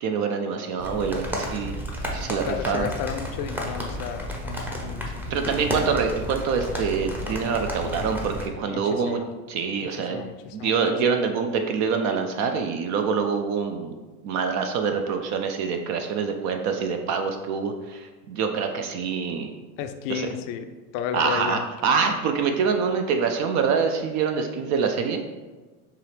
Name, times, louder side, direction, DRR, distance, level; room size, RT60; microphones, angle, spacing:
voice 1, 0.0-1.7 2.1-2.9 5.3-9.2 9.5-10.2 10.5-14.0 14.2-19.5 20.1-20.3 21.1-25.2, right 5 dB, 40° right, 5 dB, 0.4 m, -25 dB
sound 1, 0.8-8.5, equal, 5° right, 0.7 m, -32 dB
voice 2, 2.5-5.3 8.7-9.3 10.1-10.3 10.6-10.7 19.8-20.7 20.9-21.6, left 9 dB, 50° left, 8 dB, 0.5 m, -32 dB
4.7 x 2.9 x 3.2 m, 1.3 s
hypercardioid pair, 100°, 44 cm